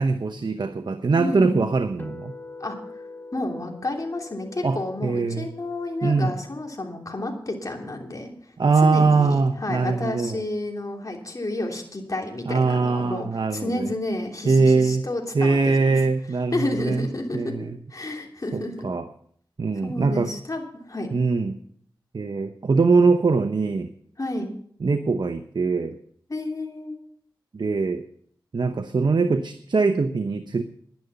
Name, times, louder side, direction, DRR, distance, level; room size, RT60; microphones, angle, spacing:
voice 1, 0.0-2.3 4.6-5.5 6.0-6.3 8.6-10.4 12.5-13.9 14.4-15.1 15.3-17.1 17.3-17.7 18.5-19.1 19.6-20.3 21.1-21.6 22.1-23.9 24.8-26.0 27.5-28.0 28.5-30.6, right 4 dB, 60° right, 9 dB, 0.9 m, -22 dB
voice 2, 1.2-1.7 2.6-2.8 3.3-8.5 8.8-15.9 16.5-17.6 17.9-18.9 19.8-21.1 24.2-24.5 26.3-27.0, left 2 dB, 40° left, 1 dB, 3.1 m, -30 dB
sound 1, 2.0-8.1, left 3 dB, 20° left, 2.0 m, -45 dB
11.0 x 10.5 x 6.9 m, 0.62 s
cardioid pair, 45°, 9 cm